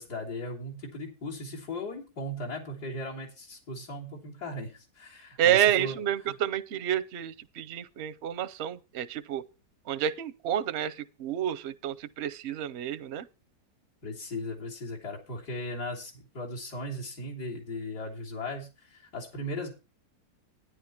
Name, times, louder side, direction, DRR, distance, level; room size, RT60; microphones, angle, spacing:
voice 1, 0.0-6.0 14.0-19.7, left 1 dB, 75° left, 3.9 m, -37 dB
voice 2, 5.4-9.4 9.9-13.3, right 10 dB, 55° right, 0.8 m, -29 dB
11.0 x 10.5 x 4.4 m
omnidirectional pair, 1.7 m